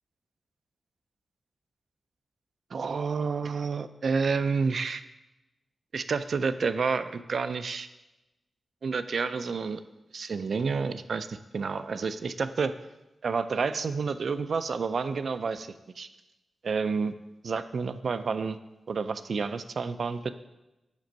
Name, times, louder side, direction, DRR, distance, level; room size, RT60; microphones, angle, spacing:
voice 1, 2.7-5.0 5.9-7.9 8.8-9.8 10.1-12.7 13.2-16.1 16.6-17.1 17.4-18.6 18.9-20.3, right 5 dB, 65° right, 11 dB, 0.3 m, -29 dB
5.3 x 5.1 x 5.1 m, 0.99 s
wide cardioid pair, 120°, 0 cm